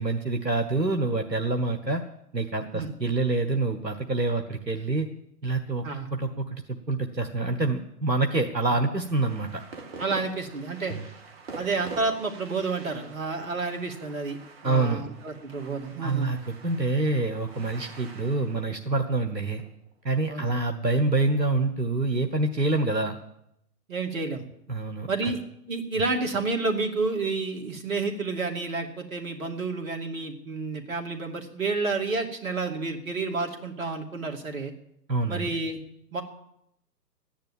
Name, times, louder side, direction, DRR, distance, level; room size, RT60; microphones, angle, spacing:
voice 1, 0.0-2.0 2.3-5.1 5.4-5.8 6.1-9.6 10.9-11.1 14.6-15.0 16.0-19.6 20.0-23.2 24.7-25.3 35.1-35.4, right 3 dB, 85° right, 5 dB, 1.5 m, -26 dB
sound 1, 9.0-20.5, right 4 dB, 40° right, 1.8 m, -46 dB
voice 2, 10.0-11.0 11.6-14.4 14.6-16.3 20.3-20.5 23.9-24.4 25.1-25.4 25.7-34.7 35.3-35.8 36.1-36.2, right 3 dB, 55° right, 4 dB, 2.6 m, -30 dB
14.5 x 10.5 x 8.8 m, 0.77 s
figure-of-eight pair, 130°, 49 cm